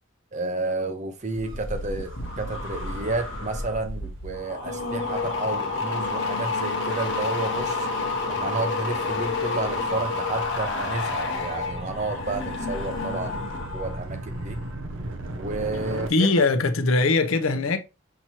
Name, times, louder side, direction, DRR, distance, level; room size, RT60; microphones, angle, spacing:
voice 1, 0.3-7.9 8.3-13.5 13.7-14.6 15.4-16.3, right 2 dB, 35° right, 0.7 m, -31 dB
sound 1, 1.3-14.0 14.3-14.7, left 3 dB, 55° left, 0.9 m, -30 dB
Gull seagull / Waves surf / Siren, 1.3-16.1, right 1 dB, 65° right, 0.7 m, -39 dB
voice 2, 16.1-17.8, left 3 dB, 75° left, 0.6 m, -21 dB
5.8 x 2.9 x 2.8 m
head